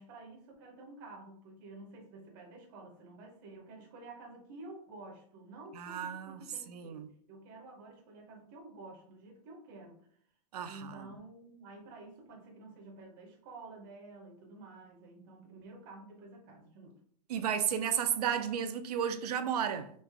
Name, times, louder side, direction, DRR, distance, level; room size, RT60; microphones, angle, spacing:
voice 1, 0.0-10.1 10.7-17.0, right 2 dB, 30° right, 0.7 m, -51 dB
voice 2, 5.8-6.4 6.7-7.1 10.5-11.1 17.3-19.9, right 8 dB, 65° right, 0.5 m, -33 dB
3.2 x 2.9 x 3.3 m
supercardioid pair, 175°, 21 cm